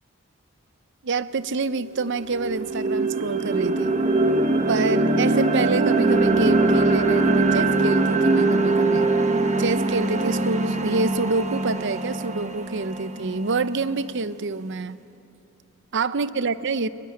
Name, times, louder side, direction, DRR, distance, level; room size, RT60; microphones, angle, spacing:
voice 1, 1.0-4.0 4.7-9.1 9.6-15.0 15.9-16.9, right 4 dB, 55° right, 15 dB, 0.7 m, -27 dB
sound 1, 1.4-1.5 1.9-14.0, right 2 dB, 30° right, 1.3 m, -22 dB
22.5 x 21.0 x 9.6 m, 2.6 s
head